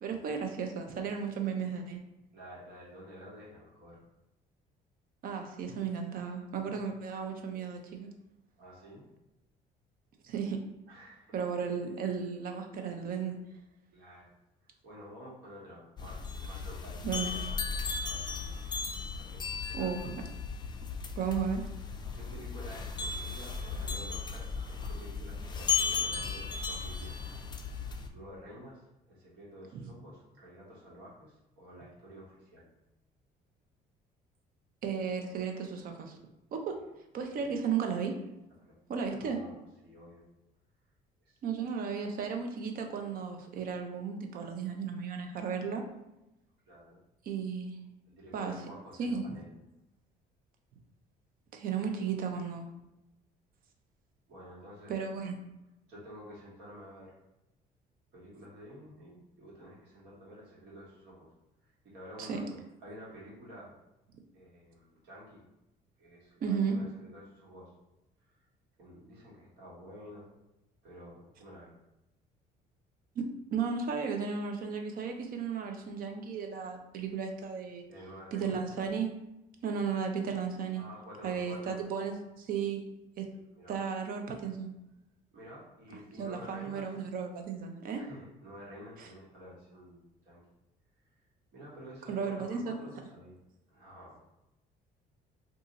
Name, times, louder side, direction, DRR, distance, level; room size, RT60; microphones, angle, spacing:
voice 1, 0.0-2.0 5.2-8.1 10.2-10.6 11.3-13.4 17.0-17.3 19.7-20.0 21.2-21.7 29.7-29.8 34.8-36.2 36.5-36.7 37.1-38.2 38.9-39.4 41.4-45.8 47.2-47.8 48.3-48.5 49.0-49.4 51.5-52.7 54.9-55.4 62.2-62.4 66.4-66.8 73.2-77.8 78.3-79.1 79.6-80.8 81.2-82.8 83.2-83.3 83.7-84.7 86.2-88.0 89.0-89.1 92.1-92.8, right 6 dB, 60° right, 4 dB, 0.6 m, -34 dB
voice 2, 2.3-4.0 7.5-7.6 8.6-9.1 10.9-11.4 13.9-14.3 14.6-17.6 18.0-18.5 19.1-20.1 22.1-27.2 27.7-32.7 36.7-36.8 37.3-37.6 38.6-38.7 39.1-39.6 39.8-40.2 41.2-41.6 46.7-47.0 48.1-49.5 54.3-54.9 55.9-57.1 58.1-61.3 61.6-63.7 64.3-65.4 66.0-67.7 68.4-68.5 68.8-70.3 70.8-71.7 77.9-78.6 80.7-81.8 83.5-83.8 85.3-86.9 88.0-90.4 91.5-93.4 93.7-94.3, equal, 80° right, -5 dB, 1.4 m, -50 dB
sound 1, 16.0-28.1, left 5 dB, 25° left, 0.4 m, -36 dB
2.7 x 2.4 x 3.9 m, 0.92 s
cardioid pair, 110°, 17 cm